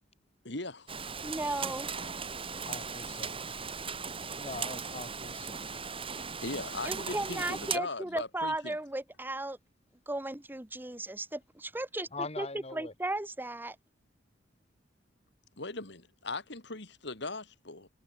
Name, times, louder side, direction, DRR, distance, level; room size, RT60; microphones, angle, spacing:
voice 1, 0.4-0.9 6.4-8.8 15.6-17.9, left 2 dB, 65° left, 4.0 m, -39 dB
Rain, 0.9-7.8, right 5 dB, 30° right, 5.9 m, -38 dB
voice 2, 1.2-1.9 6.8-9.6 10.1-12.5 12.7-13.8, right 2 dB, 10° right, 1.0 m, -35 dB
voice 3, 2.7-3.3 4.4-5.6 12.1-12.9, left 3 dB, 35° left, 4.2 m, -41 dB
head